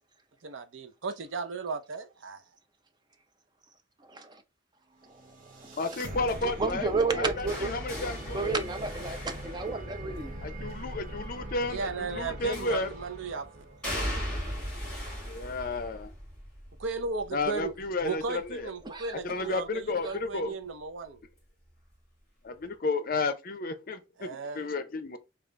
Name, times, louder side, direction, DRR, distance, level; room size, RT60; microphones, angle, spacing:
voice 1, 0.4-2.4 11.7-13.6 16.8-17.7 18.0-21.2 24.2-24.7, right 4 dB, 85° right, 0.6 m, -35 dB
voice 2, 4.1-4.4 5.9-6.0 6.4-7.7 8.3-10.3 18.8-19.2 20.0-20.2, right 3 dB, 20° right, 0.5 m, -31 dB
sound 1, 5.0-14.2, right 1 dB, 45° right, 0.8 m, -41 dB
voice 3, 5.8-6.9 7.1-8.5 10.4-12.9 15.2-16.1 17.3-18.7 19.2-20.5 22.4-25.2, left 3 dB, 45° left, 0.5 m, -32 dB
sound 2, 6.3-10.3 12.5-13.1 13.8-19.6 20.0-20.4 21.6-21.7, equal, 5° left, 2.0 m, -39 dB
3.7 x 2.4 x 3.2 m
head